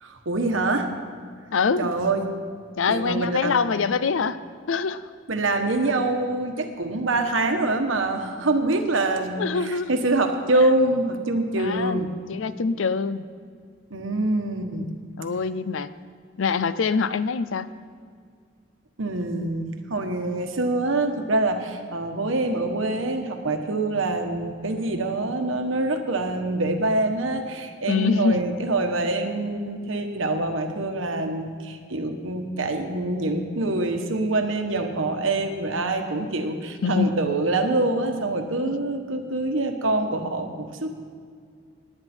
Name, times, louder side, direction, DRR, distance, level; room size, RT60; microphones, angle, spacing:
voice 1, 0.0-0.9 1.8-2.3 2.9-3.7 5.3-12.1 13.9-14.9 19.0-40.9, right 2 dB, 85° right, 5 dB, 1.3 m, -25 dB
voice 2, 1.5-1.9 2.8-4.4 4.7-5.0 9.4-10.0 10.5-10.7 11.6-12.0 12.3-13.2 15.2-15.9 16.4-17.7 27.9-28.4 36.8-37.2 38.6-38.8, left 5 dB, 85° left, 15 dB, 0.5 m, -24 dB
19.0 x 9.8 x 4.4 m, 2.1 s
head